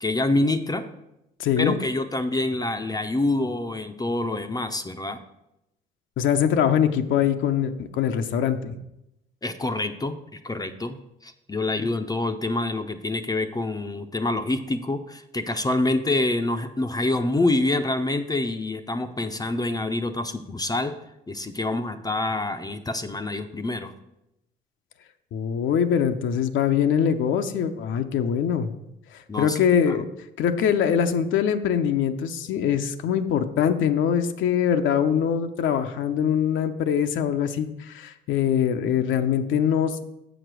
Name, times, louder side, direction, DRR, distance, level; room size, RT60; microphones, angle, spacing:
voice 1, 0.0-0.8 1.6-5.2 9.4-21.0 21.3-23.9 29.3-29.6 29.9-30.0, left 2 dB, 20° left, 7 dB, 0.6 m, -26 dB
voice 2, 1.4-1.8 6.2-8.8 25.3-28.7 29.1-30.1 30.4-40.0, left 8 dB, 70° left, 7 dB, 0.7 m, -23 dB
7.2 x 5.0 x 6.1 m, 0.87 s
cardioid pair, 80°, 21 cm